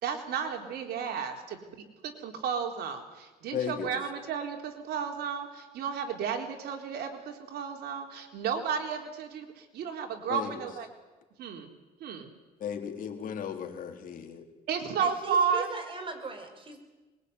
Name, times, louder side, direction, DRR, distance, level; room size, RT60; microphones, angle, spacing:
voice 1, 0.0-1.6 2.0-10.9 11.4-11.7 12.0-12.3 14.7-15.7, right 7 dB, 70° right, 4 dB, 4.0 m, -33 dB
voice 2, 3.5-3.9 10.3-10.6 12.6-14.4, left 8 dB, 55° left, 4 dB, 3.6 m, -35 dB
voice 3, 15.0-16.8, right 3 dB, 30° right, 5 dB, 5.8 m, -39 dB
23.0 x 22.0 x 9.5 m, 1.2 s
cardioid pair, 110°, 17 cm